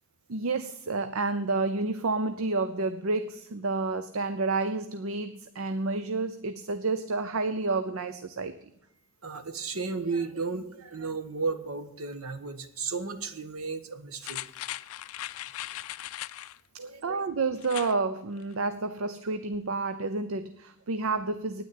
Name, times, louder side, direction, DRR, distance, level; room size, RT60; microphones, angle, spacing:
voice 1, 0.3-8.6 17.0-21.6, right 3 dB, 75° right, 10 dB, 0.7 m, -30 dB
voice 2, 9.2-14.4 16.8-17.2, right 4 dB, 90° right, 10 dB, 1.3 m, -34 dB
sound 1, 14.2-16.6 17.6-18.0 18.4-18.5, left 14 dB, 85° left, 0.4 m, -38 dB
9.6 x 9.4 x 8.6 m, 0.78 s
head